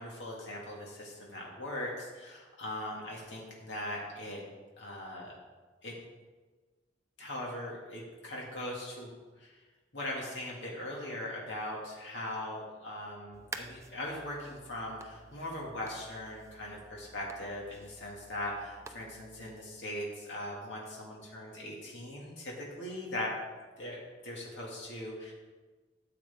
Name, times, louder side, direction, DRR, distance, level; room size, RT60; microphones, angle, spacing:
voice 1, 0.0-4.4 4.8-5.3 5.8-5.9 7.2-9.1 9.4-9.6 9.9-22.5 22.8-23.4 23.8-25.3, left 1 dB, 80° left, -3 dB, 2.1 m, -40 dB
sound 1, 13.3-19.6, right 3 dB, 15° right, 0.5 m, -50 dB
13.5 x 7.9 x 3.5 m, 1.3 s
head